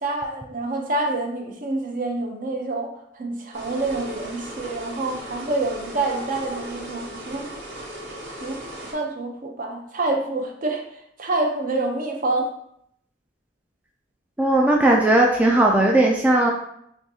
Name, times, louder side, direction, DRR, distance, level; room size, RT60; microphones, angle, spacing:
voice 1, 0.0-2.9 3.1-7.4 8.4-8.6 8.9-12.5, right 2 dB, 45° right, 2 dB, 0.6 m, -27 dB
sound 1, 3.5-8.9, right 1 dB, 70° right, 1.6 m, -37 dB
voice 2, 14.4-16.5, right 1 dB, 10° right, -1 dB, 0.3 m, -17 dB
6.2 x 2.3 x 2.7 m, 0.73 s
head